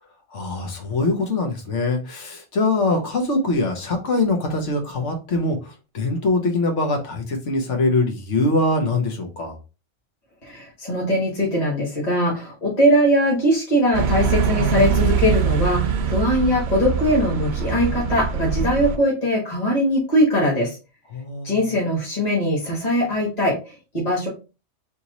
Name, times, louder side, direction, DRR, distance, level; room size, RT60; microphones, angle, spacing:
voice 1, 0.3-9.6 21.1-21.7, left 2 dB, 75° left, 3 dB, 1.4 m, -23 dB
voice 2, 10.4-20.8 21.4-24.3, equal, 35° left, -4 dB, 1.4 m, -21 dB
sound 1, 13.9-19.0, right 7 dB, 65° right, 0.8 m, -23 dB
3.5 x 3.0 x 3.9 m, 0.31 s
omnidirectional pair, 1.2 m